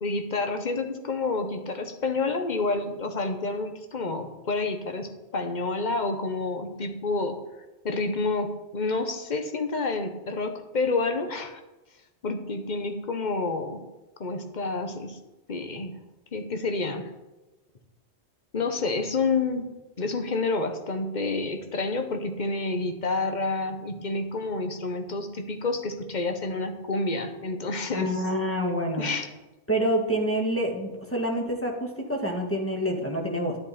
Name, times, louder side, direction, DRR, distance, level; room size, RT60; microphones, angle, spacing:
voice 1, 0.0-7.4 7.8-11.6 12.2-13.8 14.2-15.2 15.5-16.0 16.3-17.1 18.5-19.7 20.0-28.1 29.0-29.3, left 3 dB, 40° left, 7 dB, 1.1 m, -29 dB
voice 2, 27.9-29.1 29.7-33.6, equal, 10° left, 0 dB, 1.6 m, -27 dB
10.5 x 10.5 x 4.2 m, 1.1 s
omnidirectional pair, 1.2 m